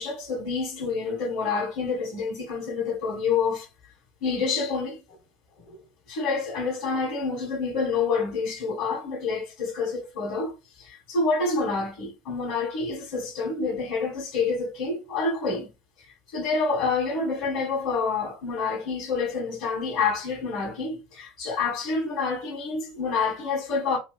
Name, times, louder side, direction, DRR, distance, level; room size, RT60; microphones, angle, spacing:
voice 1, 0.0-3.7 4.2-5.0 5.7-5.8 6.1-15.7 16.3-24.0, left 4 dB, 65° left, 1.4 m, -28 dB
3.0 x 2.6 x 3.9 m
hypercardioid pair, 85°, 0 cm